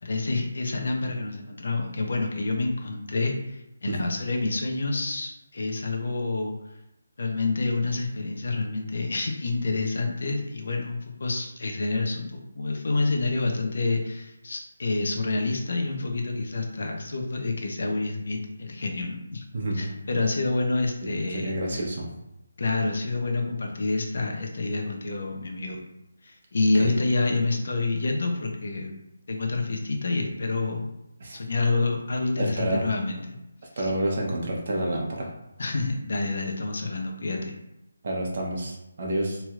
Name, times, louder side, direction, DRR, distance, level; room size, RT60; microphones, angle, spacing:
voice 1, 0.0-6.5 7.2-19.4 19.7-21.8 22.6-25.8 26.2-28.9 29.3-30.9 31.3-33.2 33.8-33.9 35.6-37.5, left 3 dB, 60° left, 2 dB, 0.7 m, -28 dB
voice 2, 21.0-22.1 26.8-27.0 31.2-31.4 32.4-32.9 33.8-35.3 38.0-39.4, right 1 dB, 45° right, -2 dB, 0.8 m, -29 dB
3.1 x 2.8 x 2.4 m, 0.89 s
figure-of-eight pair, 165°, 0 cm